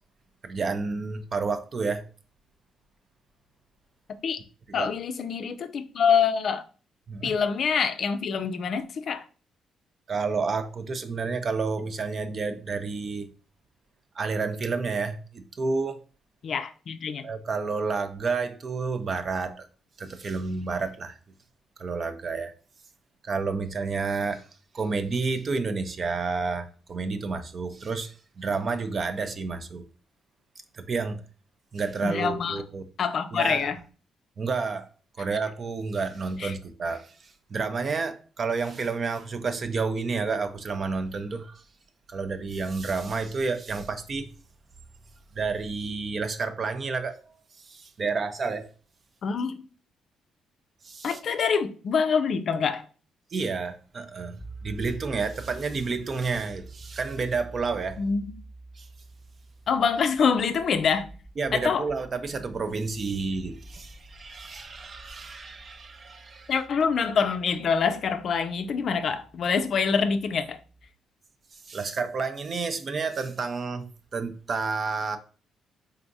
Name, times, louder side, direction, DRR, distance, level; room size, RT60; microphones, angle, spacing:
voice 1, 0.4-2.0 4.7-4.9 7.1-7.3 10.1-13.3 14.2-16.0 17.2-19.7 20.0-21.2 21.8-22.5 23.2-24.4 24.7-29.8 30.7-31.2 31.7-32.8 33.3-33.7 34.4-34.9 35.2-41.6 42.1-44.3 45.3-47.2 47.6-48.7 50.8-51.2 53.3-58.0 58.8-58.9 61.4-66.5 71.6-75.2, right 4 dB, 45° right, 0.5 m, -30 dB
voice 2, 4.7-6.6 7.2-9.2 16.4-17.3 32.0-32.6 33.0-33.8 36.4-36.5 49.2-49.6 51.0-52.9 58.0-58.3 59.7-61.1 61.5-61.9 66.5-70.6, left 6 dB, 60° left, 0.4 m, -25 dB
sound 1, 54.4-70.8, right 2 dB, 5° left, 0.5 m, -48 dB
3.8 x 3.4 x 2.6 m
cardioid pair, 90°, 0 cm